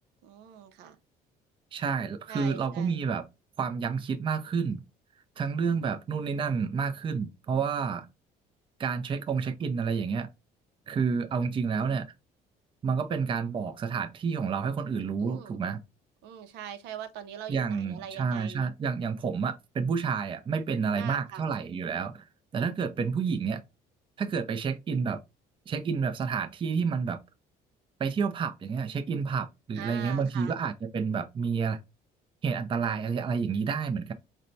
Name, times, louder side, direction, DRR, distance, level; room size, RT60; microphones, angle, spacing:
voice 1, 0.2-1.0 2.3-3.0 15.2-15.6 16.2-18.7 20.9-21.4 29.7-30.6, right 9 dB, 90° right, 0.6 m, -42 dB
voice 2, 1.7-3.2 3.6-4.8 5.4-8.1 8.8-10.3 10.9-12.1 12.8-15.8 17.5-22.2 22.5-23.6 24.2-25.2 25.7-27.2 28.0-31.8 32.4-34.1, right 5 dB, 30° right, 0.5 m, -29 dB
4.1 x 2.2 x 2.6 m
cardioid pair, 110°, 17 cm